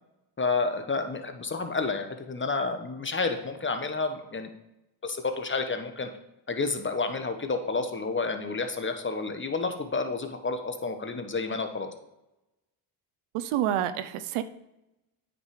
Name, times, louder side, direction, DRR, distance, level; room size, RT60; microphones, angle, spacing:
voice 1, 0.4-4.5 5.0-6.1 6.5-11.9, left 4 dB, 25° left, 6 dB, 1.1 m, -30 dB
voice 2, 13.3-14.4, right 11 dB, 80° right, 12 dB, 0.7 m, -28 dB
8.7 x 5.1 x 4.9 m, 0.92 s
supercardioid pair, 75°, 49 cm